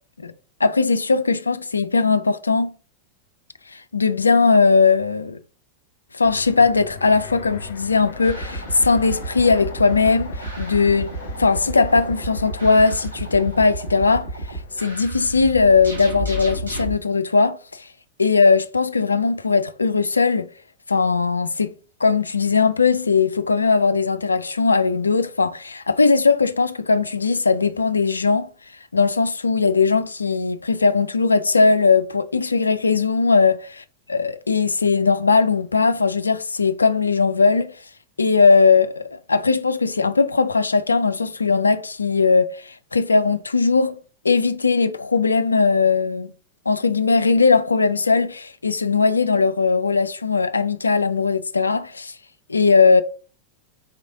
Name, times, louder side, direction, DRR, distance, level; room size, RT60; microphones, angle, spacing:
voice 1, 0.6-2.7 3.7-5.4 6.1-11.1 11.4-17.9 18.2-20.5 20.9-21.7 22.0-28.5 28.9-37.7 38.2-44.0 44.2-46.3 46.7-52.1 52.5-53.0, left 4 dB, 80° left, 0.3 m, -19 dB
Fixed-wing aircraft airplane, 6.2-14.9, left 5 dB, 60° left, 0.7 m, -40 dB
sound 1, 8.2-16.9, right 2 dB, 80° right, 1.2 m, -32 dB
4.3 x 3.2 x 3.7 m
figure-of-eight pair, 90°, 0 cm